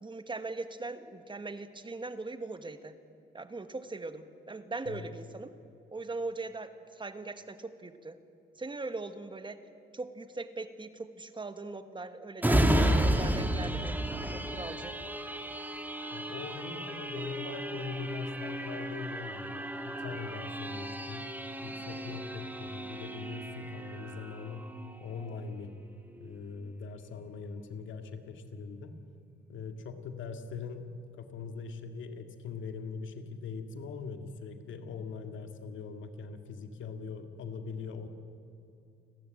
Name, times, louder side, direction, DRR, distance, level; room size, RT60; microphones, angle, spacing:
voice 1, 0.0-3.0 3.3-5.5 5.9-8.2 8.5-9.6 9.9-14.0 14.3-15.0, right 3 dB, 25° right, 10 dB, 1.4 m, -40 dB
sound 1, 12.4-25.7 26.2-26.3, right 1 dB, 10° right, 2.2 m, -33 dB
voice 2, 16.1-21.3 21.6-24.7 25.0-25.7 26.2-29.0 29.5-30.9 31.2-38.1, left 5 dB, 75° left, 6 dB, 2.2 m, -41 dB
29.5 x 13.5 x 8.9 m, 2.6 s
cardioid pair, 90°, 20 cm